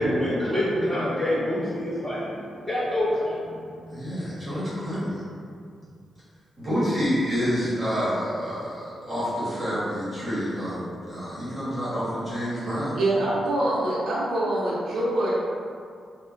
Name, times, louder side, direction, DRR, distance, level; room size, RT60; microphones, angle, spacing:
voice 1, 0.0-3.5 4.0-4.1, left 1 dB, 15° left, -14 dB, 1.5 m, -26 dB
voice 2, 3.9-5.2 6.6-13.0, equal, 15° right, -11 dB, 0.9 m, -28 dB
voice 3, 13.0-15.4, right 1 dB, 70° right, -7 dB, 0.5 m, -25 dB
2.8 x 2.1 x 2.4 m, 2.2 s
wide cardioid pair, 165°, 0 cm